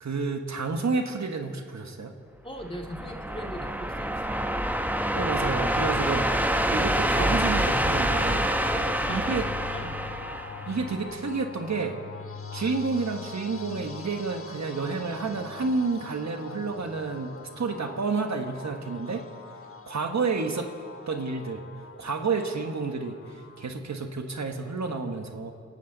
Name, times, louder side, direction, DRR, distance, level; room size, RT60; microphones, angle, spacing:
voice 1, 0.0-2.1 5.1-8.5 9.1-9.4 10.7-11.9 12.5-19.2 19.9-20.7 21.1-21.6 22.0-25.5, right 4 dB, 65° right, 5 dB, 1.3 m, -30 dB
voice 2, 2.4-4.5 8.7-10.0, equal, 15° left, 1 dB, 2.3 m, -39 dB
sound 1, 2.6-11.1, right 1 dB, 5° right, 1.0 m, -27 dB
sound 2, 8.1-23.7, left 5 dB, 45° left, 1.1 m, -43 dB
26.5 x 12.0 x 4.0 m, 2.3 s
cardioid pair, 45°, 30 cm